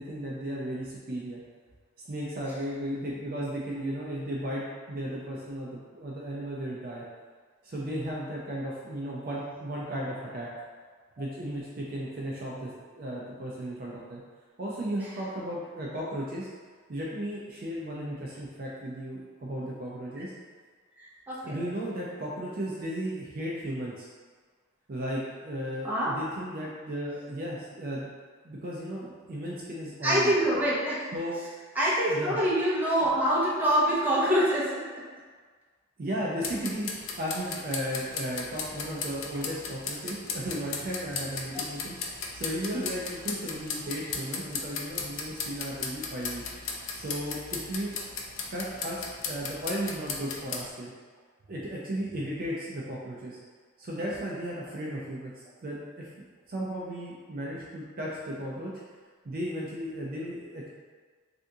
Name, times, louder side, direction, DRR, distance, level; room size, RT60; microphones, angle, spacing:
voice 1, 0.0-1.4 2.1-7.0 7.6-10.5 11.2-14.2 14.6-16.5 16.9-20.3 21.4-24.1 24.9-28.1 28.4-30.3 31.1-31.4 32.1-32.4 36.0-47.9 48.5-50.9 51.5-53.4 53.8-55.3 55.6-56.1 56.5-58.7 59.2-60.7, equal, 45° right, -4 dB, 0.4 m, -35 dB
voice 2, 21.0-21.6 25.8-26.1 30.0-31.1 31.8-34.7 41.5-41.6, equal, 10° right, -8 dB, 0.7 m, -25 dB
sound 1, 36.4-50.7, left 4 dB, 65° left, 0.4 m, -37 dB
3.4 x 2.5 x 2.6 m, 1.5 s
head